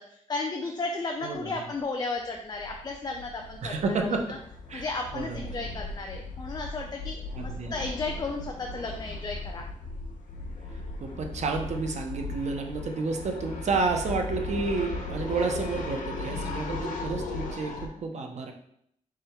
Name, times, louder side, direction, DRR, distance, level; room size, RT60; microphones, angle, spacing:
voice 1, 0.3-4.4 4.7-9.6, left 3 dB, 30° left, 1 dB, 0.5 m, -34 dB
sound 1, 1.3-1.5 1.7-1.8 2.2-17.9, left 3 dB, 75° left, 0.9 m, -37 dB
voice 2, 3.6-4.2 4.7-4.9 5.1-5.6 7.3-7.7 11.0-18.5, right 4 dB, 60° right, 4 dB, 0.7 m, -30 dB
3.7 x 3.2 x 4.4 m, 0.70 s
cardioid pair, 105°, 13 cm